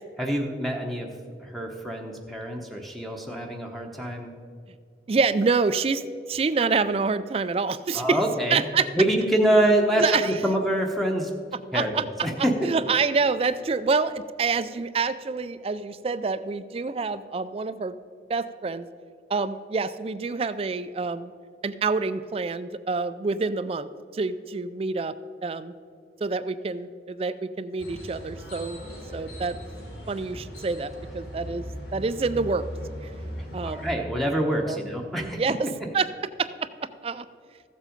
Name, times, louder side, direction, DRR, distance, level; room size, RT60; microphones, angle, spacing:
voice 1, 0.2-4.4 7.9-8.6 8.9-11.4 11.7-12.7 33.4-35.9, right 1 dB, ahead, 2 dB, 0.9 m, -26 dB
voice 2, 5.1-6.0 6.3-8.2 8.5-8.9 10.0-10.3 11.7-12.0 12.6-18.0 18.3-18.9 19.3-21.3 21.6-23.9 24.1-25.1 25.4-25.7 26.2-28.8 29.1-29.6 30.1-31.7 31.9-32.6 33.5-33.9 34.7-34.8 35.2-35.6 35.9-36.1 36.4-36.5 37.0-37.3, right 4 dB, 35° right, 14 dB, 0.3 m, -27 dB
sound 1, 27.8-33.9, equal, 80° left, 3.3 m, -38 dB
14.5 x 7.4 x 5.1 m, 2.2 s
head